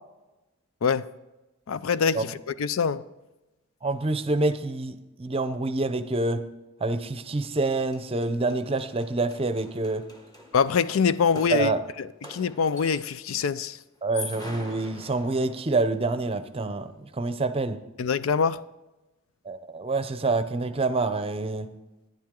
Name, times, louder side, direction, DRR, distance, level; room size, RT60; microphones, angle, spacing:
voice 1, 0.8-1.1 1.7-3.1 10.5-11.7 12.0-13.8 18.0-18.6, left 6 dB, 75° left, 0.4 m, -24 dB
voice 2, 3.8-6.5 6.8-10.0 11.5-11.8 14.0-17.8 19.5-21.7, right 3 dB, 25° right, 0.6 m, -27 dB
sound 1, 7.3-7.4 7.6-13.3 13.9-15.8, left 1 dB, 20° left, 1.4 m, -44 dB
10.5 x 10.5 x 3.7 m
head